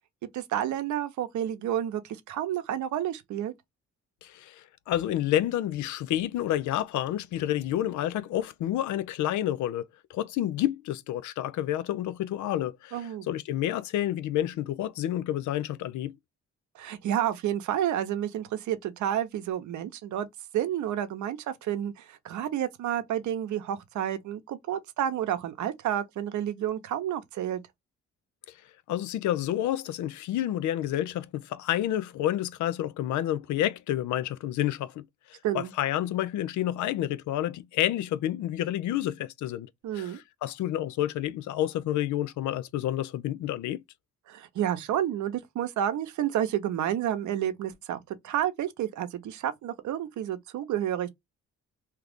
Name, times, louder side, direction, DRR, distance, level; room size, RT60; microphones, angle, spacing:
voice 1, 0.3-3.5 12.9-13.3 16.7-20.3 20.5-27.6 35.4-35.7 39.8-40.2 44.3-51.1, right 11 dB, 70° right, 0.8 m, -30 dB
voice 2, 4.2-16.1 28.9-35.0 35.3-43.8, left 12 dB, 70° left, 0.5 m, -29 dB
2.9 x 2.4 x 3.4 m
cardioid pair, 90°, 30 cm